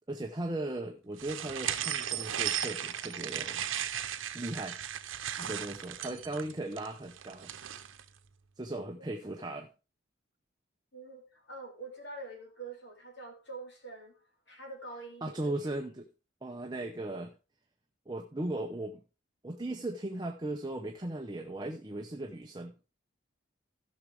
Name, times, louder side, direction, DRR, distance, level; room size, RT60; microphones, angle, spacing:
voice 1, 0.1-3.6 4.3-4.8 5.4-7.5 8.6-9.7 15.2-16.0 16.4-17.4 18.1-19.0 19.4-22.7, right 2 dB, 20° right, 0.7 m, -37 dB
sound 1, 1.2-8.0, right 10 dB, 80° right, 0.8 m, -36 dB
voice 2, 9.0-9.3 10.9-15.9, right 2 dB, 55° left, 2.9 m, -46 dB
15.0 x 6.2 x 3.5 m
head